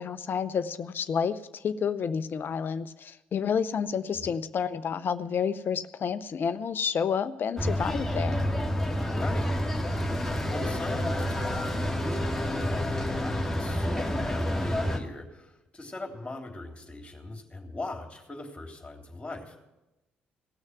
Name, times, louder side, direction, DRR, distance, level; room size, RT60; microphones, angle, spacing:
voice 1, 0.0-8.4, left 7 dB, 45° left, 11 dB, 0.7 m, -30 dB
sound 1, 7.6-15.0, left 1 dB, 5° left, 2.0 m, -29 dB
voice 2, 9.1-9.5 10.5-19.6, left 2 dB, 20° left, 2 dB, 3.3 m, -40 dB
17.0 x 6.5 x 9.9 m, 0.99 s
hypercardioid pair, 45°, 5 cm